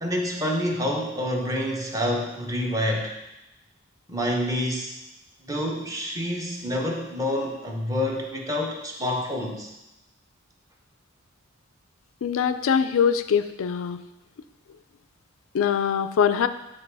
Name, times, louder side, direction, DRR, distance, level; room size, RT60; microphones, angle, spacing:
voice 1, 0.0-3.1 4.1-4.9 5.4-9.7, left 1 dB, 15° right, 0 dB, 1.0 m, -27 dB
voice 2, 12.2-14.0 15.5-16.5, left 7 dB, 65° left, 12 dB, 0.4 m, -23 dB
9.1 x 3.3 x 4.7 m, 0.95 s
head